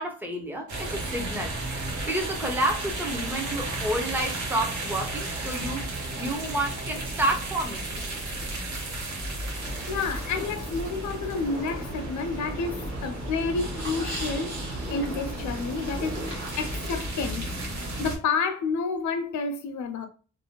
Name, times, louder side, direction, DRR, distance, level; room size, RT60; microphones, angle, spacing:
voice 1, 0.0-5.9 6.2-8.0, right 1 dB, 5° right, 0.4 m, -30 dB
sound 1, 0.7-18.2, right 2 dB, 80° right, 0.9 m, -33 dB
sound 2, 9.6-16.9, equal, 45° right, 1.1 m, -41 dB
voice 2, 9.9-14.5 14.9-17.4 18.0-20.1, left 4 dB, 85° left, 0.5 m, -30 dB
2.5 x 2.1 x 2.8 m
wide cardioid pair, 170°, 29 cm